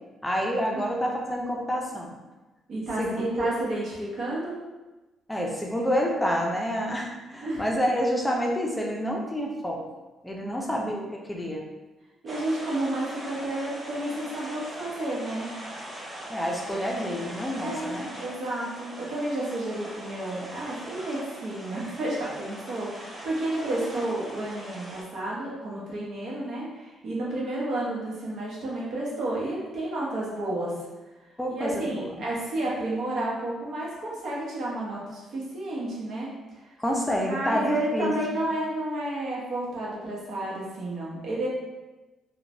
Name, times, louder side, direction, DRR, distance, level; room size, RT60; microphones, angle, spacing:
voice 1, 0.2-2.1 3.0-3.5 5.3-9.8 10.2-11.0 11.3-11.6 16.3-18.1 31.4-32.1 36.8-38.1, equal, 10° left, -1 dB, 0.5 m, -28 dB
voice 2, 2.7-4.6 7.4-7.6 10.4-10.8 12.2-15.5 17.6-30.7 31.6-36.3 36.5-36.7 37.3-41.5, right 1 dB, 65° right, -5 dB, 0.9 m, -31 dB
sound 1, 12.3-25.0, right 1 dB, 25° right, 0.8 m, -41 dB
3.0 x 2.2 x 2.6 m, 1.1 s
cardioid pair, 90°, 0 cm